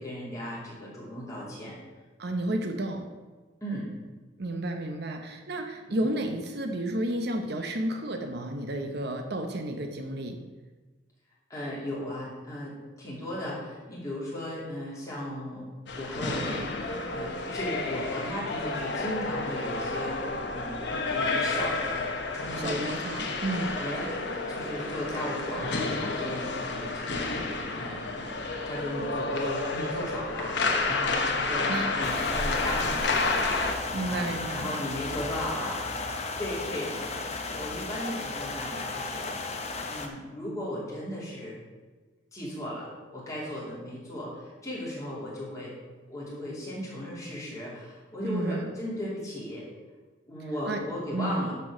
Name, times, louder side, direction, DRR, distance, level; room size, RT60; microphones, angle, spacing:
voice 1, 0.0-1.8 3.6-3.9 5.9-6.0 11.5-15.7 16.0-20.8 21.1-22.8 23.7-24.2 24.5-35.9 36.4-39.3 39.9-41.6 42.3-45.7 46.1-49.6 50.3-51.5, left 1 dB, 15° left, -7 dB, 3.0 m, -36 dB
voice 2, 2.2-3.1 4.4-10.4 22.6-23.8 31.7-32.0 33.9-34.7 48.2-48.7 50.7-50.8 51.1-51.5, right 1 dB, 55° right, 5 dB, 0.8 m, -31 dB
sound 1, 15.9-33.7, left 3 dB, 60° left, 1.1 m, -30 dB
sound 2, 32.0-40.1, left 3 dB, 35° left, 0.9 m, -34 dB
11.0 x 4.6 x 6.2 m, 1.3 s
head